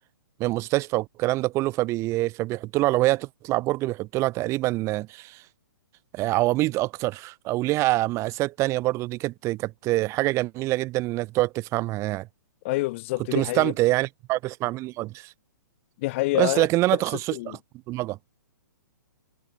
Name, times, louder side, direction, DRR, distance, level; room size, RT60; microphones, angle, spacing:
voice 1, 0.4-5.4 6.1-12.3 13.3-15.3 16.3-17.6 17.9-18.2, right 18 dB, 25° right, 4.5 m, -25 dB
voice 2, 12.6-13.7 16.0-16.7 17.3-17.6, left 21 dB, 40° left, 5.2 m, -27 dB
figure-of-eight pair, 120°, 11 cm